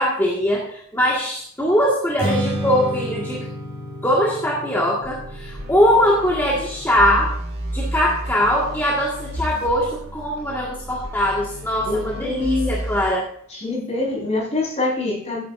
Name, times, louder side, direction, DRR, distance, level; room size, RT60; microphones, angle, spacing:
voice 1, 0.0-3.5 4.0-7.3 7.7-13.3, equal, 10° left, -4 dB, 1.7 m, -21 dB
Strum, 2.2-8.5, right 1 dB, 30° right, 3.2 m, -31 dB
sound 1, 5.0-13.1, equal, 50° right, 2.1 m, -32 dB
voice 2, 11.8-12.8 13.5-15.4, left 2 dB, 30° left, -3 dB, 4.8 m, -24 dB
15.0 x 9.9 x 2.6 m, 0.64 s
head